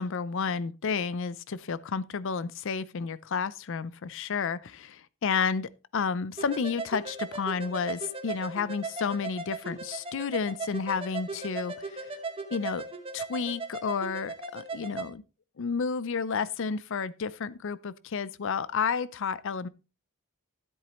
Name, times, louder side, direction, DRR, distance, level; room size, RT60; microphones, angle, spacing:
voice 1, 0.0-12.1 12.5-12.8 13.1-15.2 15.6-19.7, left 5 dB, 60° left, 0.5 m, -31 dB
sound 1, 6.4-15.1, right 3 dB, 25° right, 1.3 m, -38 dB
13.0 x 8.0 x 3.0 m
head